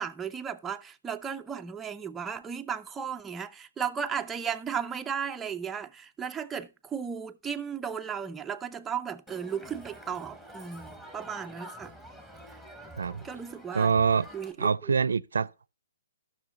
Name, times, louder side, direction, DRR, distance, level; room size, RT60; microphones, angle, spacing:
voice 1, 0.0-11.9 13.2-13.9 14.3-14.9, right 7 dB, 10° right, 0.4 m, -35 dB
Crowd, 9.3-14.5, equal, 5° left, 1.3 m, -47 dB
voice 2, 13.7-14.3 14.6-15.7, right 5 dB, 80° right, 0.5 m, -25 dB
14.0 x 6.2 x 4.0 m
hypercardioid pair, 145°, 0 cm